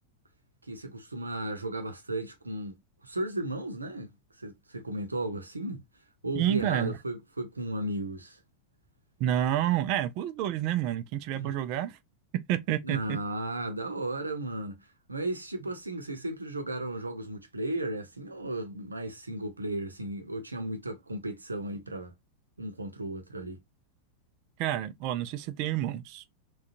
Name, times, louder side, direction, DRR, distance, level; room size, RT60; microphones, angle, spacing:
voice 1, 0.6-5.8 6.2-8.4 11.3-11.5 12.8-22.1 22.6-23.6, right 1 dB, 80° right, 0.7 m, -35 dB
voice 2, 6.4-6.9 9.2-12.0 12.3-13.2 24.6-26.2, right 12 dB, 45° right, 0.4 m, -29 dB
3.7 x 2.2 x 2.5 m
figure-of-eight pair, 90°, 0 cm